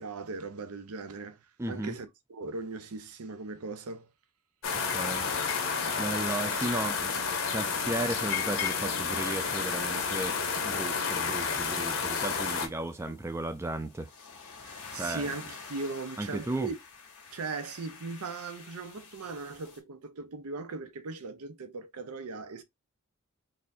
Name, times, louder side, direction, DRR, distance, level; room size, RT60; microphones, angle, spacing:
voice 1, 0.0-4.1 14.5-16.7 17.3-22.6, right 3 dB, 85° right, 0.6 m, -39 dB
voice 2, 1.6-1.9 4.9-5.3 6.0-7.2 7.5-14.1 14.9-15.3 16.2-16.7, right 2 dB, 10° right, 0.3 m, -35 dB
sound 1, 4.6-12.7, left 5 dB, 60° left, 0.9 m, -30 dB
sound 2, 10.1-19.8, left 5 dB, 85° left, 1.2 m, -50 dB
4.0 x 2.6 x 2.6 m
head